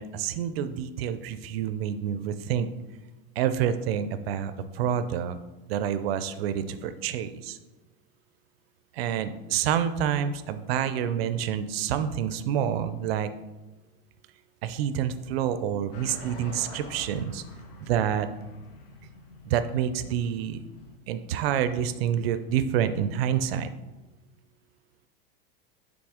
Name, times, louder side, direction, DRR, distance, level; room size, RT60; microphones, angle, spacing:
voice 1, 0.0-2.7 3.4-5.4 5.7-7.6 8.9-13.3 14.6-17.4 17.8-18.3 19.5-20.6 21.1-23.7, right 9 dB, 90° right, 11 dB, 0.5 m, -28 dB
sound 1, 15.9-21.0, left 3 dB, 75° left, 1.2 m, -46 dB
6.1 x 3.7 x 4.9 m, 1.1 s
supercardioid pair, 170°, 29 cm